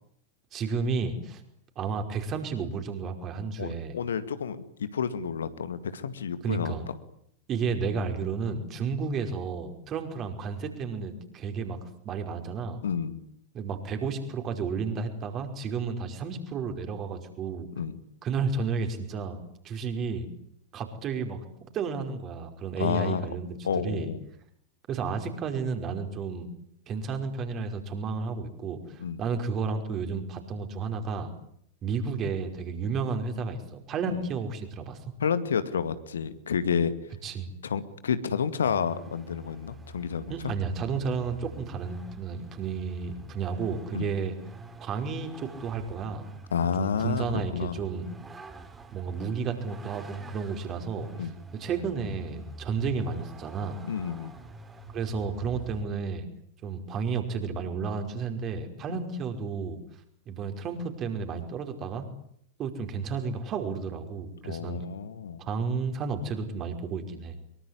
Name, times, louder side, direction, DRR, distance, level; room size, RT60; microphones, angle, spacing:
voice 1, 0.5-1.4 1.8-4.0 6.4-6.9 7.5-11.8 12.1-12.8 13.5-17.7 18.2-19.4 19.6-20.3 20.7-21.4 21.7-23.6 23.8-24.1 24.9-26.5 26.9-31.3 31.8-35.0 37.2-37.5 40.3-44.3 44.8-46.3 46.8-48.1 48.9-53.8 54.9-56.3 56.6-59.8 60.3-62.1 62.6-64.8 65.4-67.4, right 5 dB, 30° right, 6 dB, 5.3 m, -32 dB
voice 2, 3.6-6.7 12.8-13.2 17.8-18.0 22.8-23.2 23.6-24.2 29.0-29.2 34.1-34.2 35.2-36.9 37.6-40.5 43.9-44.1 46.5-47.8 51.2-51.3 53.9-54.3 58.9-59.0 64.4-65.4, left 7 dB, 65° left, 12 dB, 2.1 m, -30 dB
Vehicle, 38.6-55.8, right 3 dB, 15° right, 3.9 m, -46 dB
24.5 x 23.5 x 9.9 m, 0.68 s
figure-of-eight pair, 90°, 0 cm